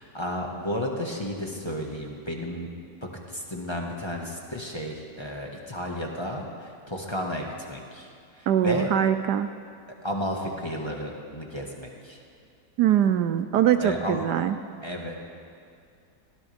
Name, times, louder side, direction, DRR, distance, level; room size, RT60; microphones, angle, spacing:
voice 1, 0.0-2.7 3.0-8.1 8.4-8.9 10.0-12.2 13.7-14.2 14.8-15.1, equal, 15° left, -1 dB, 1.6 m, -33 dB
voice 2, 8.5-9.5 12.8-14.5, right 10 dB, 75° right, 10 dB, 1.1 m, -22 dB
23.5 x 17.0 x 3.5 m, 2.4 s
omnidirectional pair, 1.9 m